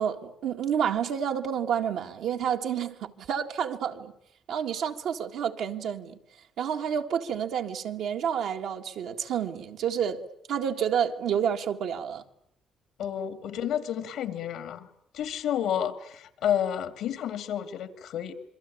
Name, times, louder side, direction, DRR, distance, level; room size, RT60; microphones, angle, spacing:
voice 1, 0.0-4.1 4.5-6.2 6.6-10.2 10.5-12.2, right 8 dB, 80° right, 1.9 m, -29 dB
voice 2, 13.0-14.9 15.1-18.3, left 9 dB, 85° left, 2.3 m, -30 dB
27.0 x 22.5 x 8.7 m
cardioid pair, 90°, 0 cm